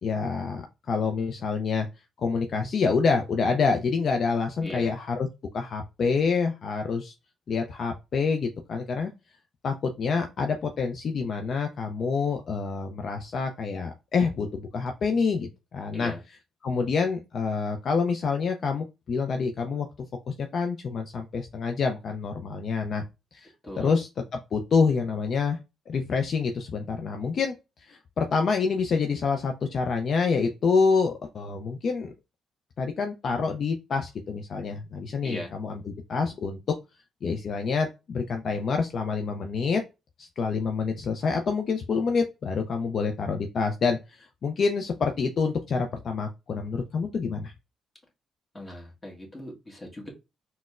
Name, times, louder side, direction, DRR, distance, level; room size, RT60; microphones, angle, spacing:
voice 1, 0.0-1.9 2.2-5.3 5.5-7.1 7.5-9.1 9.6-16.1 16.6-19.9 20.3-23.0 23.3-23.5 23.8-24.1 24.5-25.6 25.9-27.5 27.9-32.1 32.8-36.6 37.2-39.8 40.2-47.5, left 5 dB, 55° left, 0.4 m, -27 dB
voice 2, 4.6-4.9 15.9-16.2 23.6-24.0 35.2-35.5 48.5-50.1, left 1 dB, 20° left, 1.2 m, -39 dB
3.9 x 2.1 x 2.4 m
cardioid pair, 90°, 0 cm